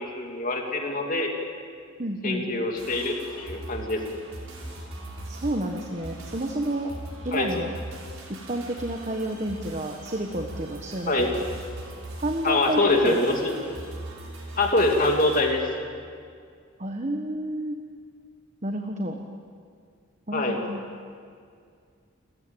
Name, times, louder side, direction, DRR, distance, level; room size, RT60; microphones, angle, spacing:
voice 1, 0.0-1.3 2.2-4.0 7.3-7.5 11.1-11.3 12.4-13.5 14.6-15.6 20.3-20.6, left 2 dB, 40° left, 2 dB, 2.8 m, -24 dB
voice 2, 2.0-2.5 5.3-6.9 7.2-7.7 8.3-11.2 12.2-13.4 16.8-17.8 18.6-19.2 20.3-20.8, right 1 dB, 35° right, 3 dB, 1.4 m, -30 dB
sound 1, 2.8-15.4, right 1 dB, 85° right, 6.2 m, -40 dB
29.5 x 15.0 x 9.1 m, 2.2 s
head